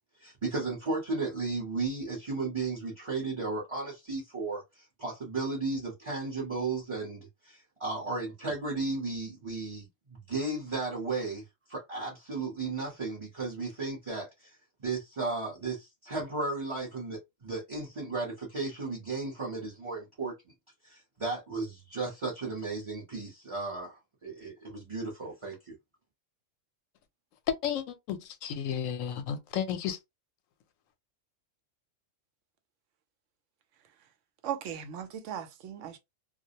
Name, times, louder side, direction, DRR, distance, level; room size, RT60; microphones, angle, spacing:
voice 1, 0.2-20.3 20.8-25.7, right 3 dB, 30° right, 0.7 m, -35 dB
voice 2, 27.6-30.0, left 8 dB, 80° left, 1.0 m, -33 dB
voice 3, 34.4-36.0, right 9 dB, 75° right, 0.9 m, -37 dB
2.4 x 2.0 x 2.7 m
omnidirectional pair, 1.3 m